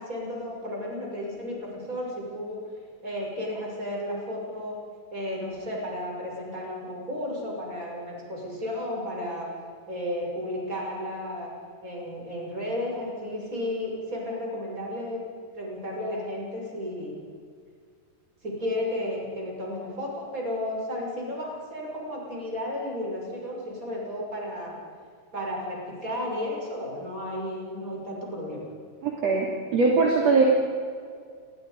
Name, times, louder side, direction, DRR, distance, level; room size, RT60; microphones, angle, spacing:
voice 1, 0.0-2.6 3.0-4.8 5.1-9.5 9.9-11.5 11.8-15.3 15.5-17.2 18.4-24.8 25.3-28.6, left 1 dB, 25° right, -2 dB, 6.8 m, -33 dB
voice 2, 29.0-29.5 29.7-30.5, right 4 dB, 50° right, -2 dB, 3.6 m, -21 dB
29.0 x 21.5 x 5.3 m, 2.1 s
omnidirectional pair, 3.9 m